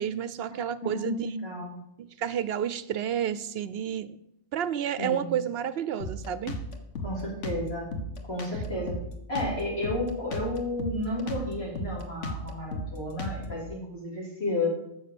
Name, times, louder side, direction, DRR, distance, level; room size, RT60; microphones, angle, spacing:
voice 1, 0.0-1.3 2.0-4.1 4.5-6.6, right 9 dB, 65° right, 15 dB, 0.7 m, -30 dB
voice 2, 0.8-1.8 5.0-5.3 7.0-7.9 8.3-9.0 9.3-14.7, left 1 dB, 55° left, -5 dB, 3.7 m, -32 dB
Drum kit, 6.0-13.7, left 1 dB, 75° left, 1.6 m, -35 dB
9.6 x 7.2 x 6.9 m, 0.81 s
omnidirectional pair, 1.2 m